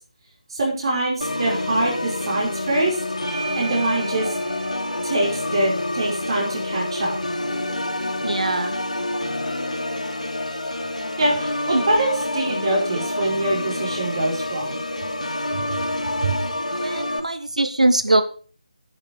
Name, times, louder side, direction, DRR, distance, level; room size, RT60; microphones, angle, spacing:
voice 1, 0.5-3.0 3.3-4.3 5.0-7.2 11.2-14.8 15.5-15.8 16.2-16.4, right 2 dB, 45° right, -3 dB, 5.3 m, -24 dB
Organ, 1.2-17.2, left 1 dB, 75° left, 2.8 m, -27 dB
Bell / Doorbell, 3.2-8.0, right 6 dB, 50° left, 2.8 m, -39 dB
voice 2, 8.2-8.7 11.7-11.8 16.8-18.2, right 2 dB, 75° right, 10 dB, 1.5 m, -21 dB
10.5 x 9.7 x 5.1 m, 0.38 s
figure-of-eight pair, 155°, 4 cm